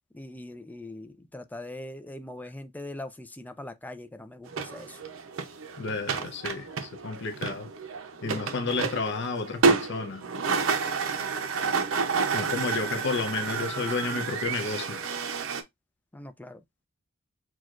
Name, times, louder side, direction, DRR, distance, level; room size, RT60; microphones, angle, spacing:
voice 1, 0.1-5.0 8.2-8.7 12.2-12.9 16.1-16.6, left 1 dB, 10° left, 0.4 m, -42 dB
sound 1, 4.5-15.6, right 5 dB, 85° right, 0.6 m, -30 dB
voice 2, 5.8-7.7 8.2-10.2 12.3-15.0, left 4 dB, 60° left, 0.6 m, -31 dB
6.2 x 2.3 x 2.4 m
head